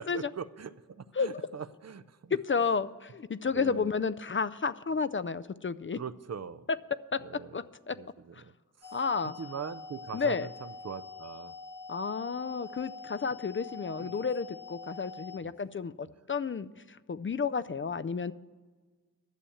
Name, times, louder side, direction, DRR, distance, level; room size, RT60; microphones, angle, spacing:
voice 1, 0.0-2.4 3.5-3.9 5.9-6.7 7.3-7.5 7.9-8.5 9.4-11.5 14.0-14.3 15.4-15.5, right 6 dB, 50° right, 14 dB, 0.5 m, -41 dB
voice 2, 1.2-1.5 2.3-6.0 7.1-7.2 7.5-8.0 8.9-9.3 10.1-10.5 11.9-16.7 17.1-18.3, left 5 dB, 35° left, 13 dB, 0.4 m, -31 dB
sound 1, 8.8-15.4, left 4 dB, 65° left, 0.7 m, -45 dB
11.5 x 7.0 x 8.5 m, 1.3 s
wide cardioid pair, 50°, 34 cm